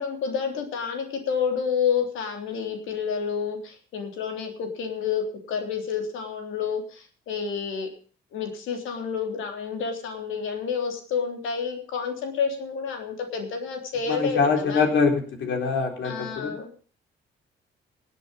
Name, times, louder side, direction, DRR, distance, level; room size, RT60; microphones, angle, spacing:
voice 1, 0.0-7.9 8.3-14.9 16.0-16.7, left 6 dB, 85° left, 4 dB, 3.5 m, -29 dB
voice 2, 14.1-16.5, left 5 dB, 70° left, 4 dB, 3.9 m, -24 dB
18.5 x 8.2 x 5.6 m, 0.42 s
cardioid pair, 90°, 20 cm